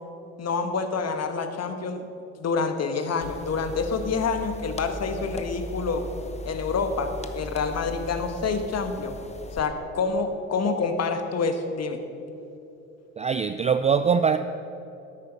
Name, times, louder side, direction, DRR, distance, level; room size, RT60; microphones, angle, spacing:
voice 1, 0.4-2.1 2.4-6.0 6.4-9.2 9.5-12.0, left 4 dB, 40° left, 7 dB, 1.5 m, -27 dB
sound 1, 3.2-9.6, equal, 15° left, 0.9 m, -38 dB
voice 2, 13.2-14.4, right 6 dB, 20° right, 10 dB, 0.3 m, -22 dB
13.0 x 9.6 x 5.5 m, 3.0 s
hypercardioid pair, 65°, 41 cm